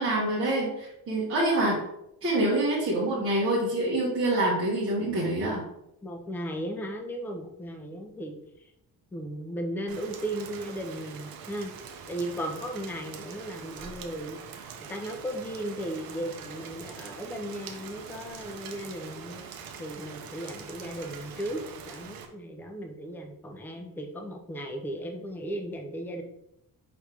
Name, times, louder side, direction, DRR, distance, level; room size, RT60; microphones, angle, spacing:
voice 1, 0.0-1.8 2.2-5.6, right 1 dB, 35° right, -7 dB, 1.2 m, -26 dB
voice 2, 6.0-8.4 9.1-11.7 12.1-14.6 14.9-19.4 19.8-26.2, right 1 dB, 5° left, 3 dB, 0.4 m, -36 dB
Rain, 9.9-22.2, right 6 dB, 70° right, 0.7 m, -43 dB
5.0 x 3.1 x 3.3 m, 0.81 s
cardioid pair, 155°, 37 cm